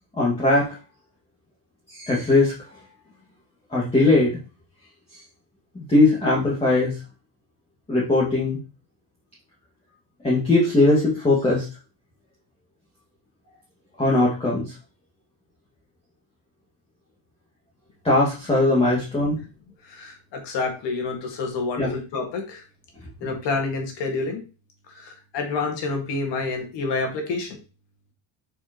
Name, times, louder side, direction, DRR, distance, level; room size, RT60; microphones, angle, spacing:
voice 1, 0.2-0.7 1.9-2.5 3.7-4.4 5.8-7.0 7.9-8.6 10.2-11.7 14.0-14.6 18.0-19.4 21.8-21.9, left 2 dB, 15° left, -5 dB, 2.0 m, -20 dB
voice 2, 19.9-22.6 23.2-24.4 24.9-27.6, left 3 dB, 65° left, 2 dB, 2.0 m, -28 dB
7.7 x 4.8 x 3.0 m, 0.33 s
cardioid pair, 140°, 46 cm